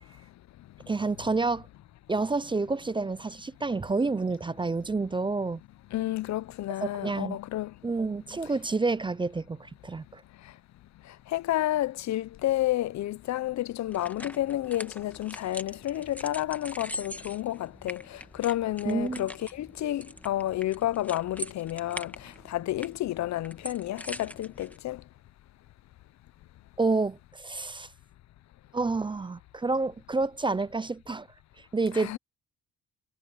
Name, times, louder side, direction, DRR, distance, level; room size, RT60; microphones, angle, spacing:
voice 1, 0.9-1.7 2.1-5.6 6.8-7.4 7.8-10.2 18.9-19.3 26.8-27.9 28.7-31.3 31.6-32.1, right 3 dB, 15° right, 0.5 m, -29 dB
voice 2, 5.9-7.7 11.3-25.0 31.9-32.2, left 14 dB, 65° left, 0.6 m, -30 dB
sound 1, 13.9-24.8, left 1 dB, 5° left, 1.5 m, -43 dB
cardioid pair, 90°, 30 cm